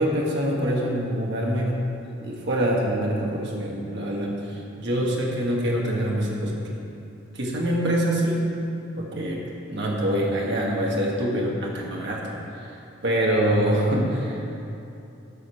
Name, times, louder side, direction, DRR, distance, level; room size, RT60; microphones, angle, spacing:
voice 1, 0.0-1.8 2.2-6.6 7.3-8.5 9.0-9.4 9.7-12.3 12.6-12.8 13.0-14.5, right 1 dB, 60° right, -3 dB, 1.7 m, -25 dB
13.5 x 5.2 x 6.4 m, 2.8 s
head